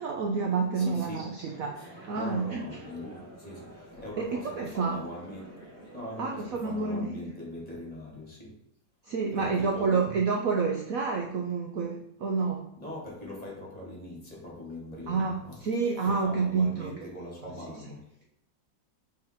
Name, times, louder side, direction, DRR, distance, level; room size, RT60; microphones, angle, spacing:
voice 1, 0.0-2.6 4.2-5.0 6.2-7.1 9.1-12.7 15.1-15.3 15.6-16.9, right 4 dB, 60° right, 2 dB, 1.0 m, -29 dB
voice 2, 0.7-1.4 1.8-8.6 9.3-10.2 12.8-15.6 16.0-18.2, left 1 dB, 20° left, -4 dB, 2.5 m, -42 dB
sound 1, 1.3-7.0, right 1 dB, 30° right, 3.3 m, -49 dB
5.6 x 4.9 x 4.5 m, 0.71 s
omnidirectional pair, 1.9 m